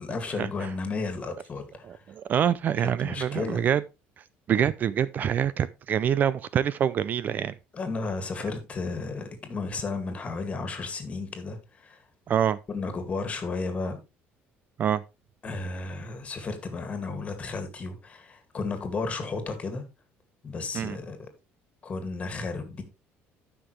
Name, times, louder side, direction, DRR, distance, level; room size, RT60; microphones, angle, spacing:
voice 1, 0.0-1.9 2.8-3.7 7.7-12.0 12.7-14.0 15.4-19.8 20.4-21.2 21.8-22.8, left 3 dB, 25° left, 2.1 m, -33 dB
voice 2, 1.8-3.8 4.5-7.5 12.3-12.6 14.8-15.0 20.7-21.0, right 9 dB, 40° right, 0.4 m, -25 dB
13.5 x 5.9 x 3.2 m
cardioid pair, 145°, 5 cm